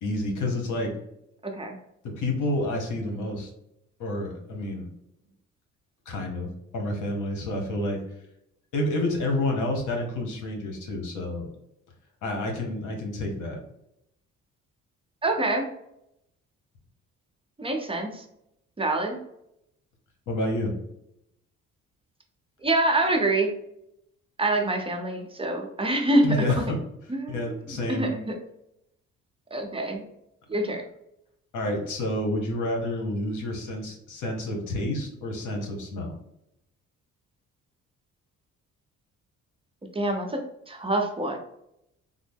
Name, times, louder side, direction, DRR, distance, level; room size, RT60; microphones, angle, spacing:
voice 1, 0.0-1.0 2.0-3.5 4.0-4.9 6.1-8.0 8.7-11.5 12.2-13.6 20.3-20.7 26.2-26.8 27.3-28.1 31.5-36.1, left 1 dB, 80° left, 2 dB, 1.1 m, -29 dB
voice 2, 1.4-1.8 15.2-15.7 17.6-18.2 18.8-19.2 22.6-23.5 24.4-26.3 27.1-27.4 27.9-28.3 29.5-30.0 30.5-30.8 39.9-40.4 40.7-41.4, right 2 dB, 20° right, 2 dB, 0.7 m, -25 dB
3.6 x 2.0 x 3.5 m, 0.80 s
cardioid pair, 90°, 30 cm